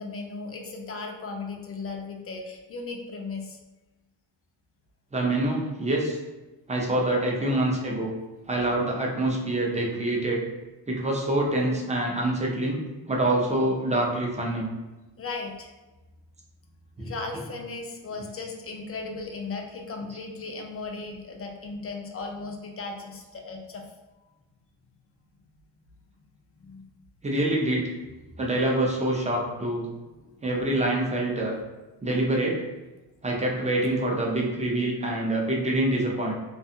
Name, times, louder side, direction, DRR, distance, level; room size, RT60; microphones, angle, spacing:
voice 1, 0.0-3.6 15.2-15.7 17.0-23.9 26.6-26.8 28.2-28.3 30.2-30.3, left 3 dB, 35° left, 2 dB, 0.4 m, -36 dB
voice 2, 5.1-6.2 6.7-8.1 8.5-10.4 10.9-12.8 13.1-14.7 17.0-17.1 27.2-27.9 28.4-29.9 30.4-31.6 32.0-32.6 33.2-36.3, right 1 dB, 15° right, -1 dB, 0.5 m, -25 dB
2.5 x 2.3 x 2.7 m, 1.1 s
cardioid pair, 85°, 44 cm